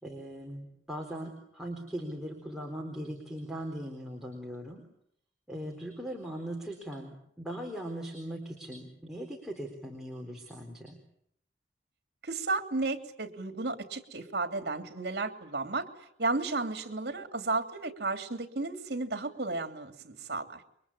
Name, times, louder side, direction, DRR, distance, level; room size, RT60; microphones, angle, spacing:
voice 1, 0.0-4.8 5.5-11.0, right 1 dB, ahead, 0 dB, 4.0 m, -39 dB
voice 2, 12.2-15.9 16.2-20.6, right 3 dB, 60° right, 7 dB, 3.0 m, -33 dB
29.0 x 23.5 x 8.6 m, 0.73 s
head